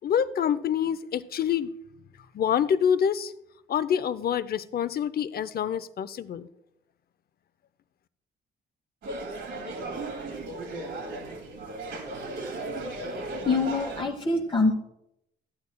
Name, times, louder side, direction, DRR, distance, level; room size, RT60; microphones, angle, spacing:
voice 1, 0.0-1.7 2.3-3.3 3.7-6.5, left 8 dB, 50° left, 15 dB, 0.6 m, -26 dB
sound 1, 9.0-14.0, right 2 dB, 70° right, 2.3 m, -36 dB
voice 2, 13.4-14.7, left 3 dB, 25° left, -2 dB, 1.3 m, -25 dB
14.0 x 8.4 x 2.3 m, 0.81 s
cardioid pair, 90°, 20 cm